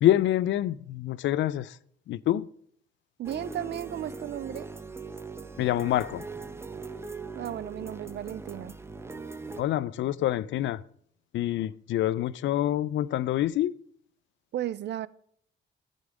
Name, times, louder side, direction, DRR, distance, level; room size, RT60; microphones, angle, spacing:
voice 1, 0.0-1.8 2.1-2.5 5.6-6.2 9.6-10.8 11.3-13.7, left 13 dB, 70° left, 0.5 m, -26 dB
sound 1, 3.2-9.6, right 3 dB, 15° right, 0.8 m, -40 dB
voice 2, 3.2-4.7 7.4-8.7 14.5-15.1, right 12 dB, 60° right, 0.5 m, -34 dB
13.0 x 5.4 x 4.9 m
cardioid pair, 90°, 20 cm